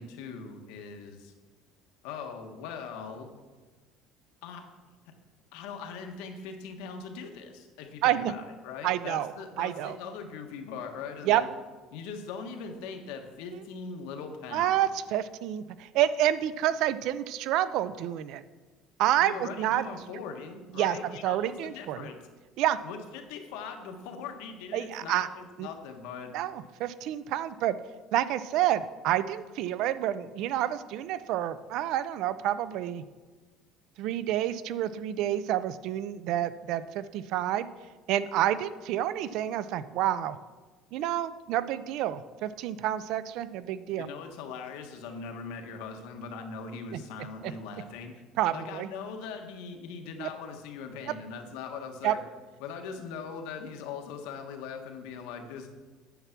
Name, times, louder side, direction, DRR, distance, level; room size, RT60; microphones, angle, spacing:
voice 1, 0.0-1.3 2.0-3.3 4.4-4.6 5.5-11.5 11.9-14.9 19.2-22.2 22.8-26.3 44.0-48.1 48.5-52.2 52.6-55.7, left 5 dB, 85° left, 5 dB, 1.4 m, -40 dB
voice 2, 8.0-8.3 8.8-9.3 9.6-10.0 11.2-11.4 14.5-18.4 19.0-19.8 20.8-22.1 22.6-22.8 24.7-25.3 25.6-25.7 26.3-27.8 28.1-33.0 34.0-37.7 38.1-40.4 40.9-44.1 46.9-47.0 47.4-47.5 48.4-48.9 50.2-50.3 52.0-52.1, right 12 dB, 55° right, 15 dB, 0.5 m, -28 dB
9.4 x 7.0 x 5.9 m, 1.3 s
cardioid pair, 175°, 0 cm